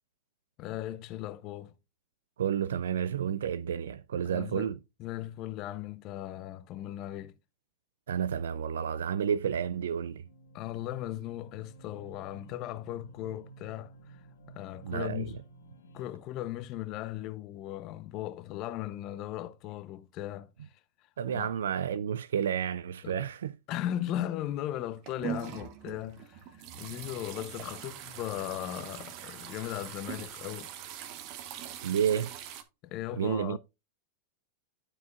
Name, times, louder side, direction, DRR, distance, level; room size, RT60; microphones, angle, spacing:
voice 1, 0.6-1.7 4.2-4.7 5.0-7.4 10.5-14.2 14.5-15.4 15.9-20.8 21.3-21.5 23.0-23.2 23.7-30.7 32.8-33.6, left 13 dB, 45° left, 0.7 m, -37 dB
voice 2, 2.4-4.8 8.1-10.2 14.8-15.3 21.2-23.6 31.8-32.3 33.2-33.6, right 8 dB, 80° right, 0.3 m, -30 dB
sound 1, 10.2-16.2, right 3 dB, 85° left, 1.4 m, -54 dB
sound 2, 24.8-32.6, right 10 dB, 50° right, 1.1 m, -42 dB
12.0 x 4.6 x 2.4 m
hypercardioid pair, 105°, 0 cm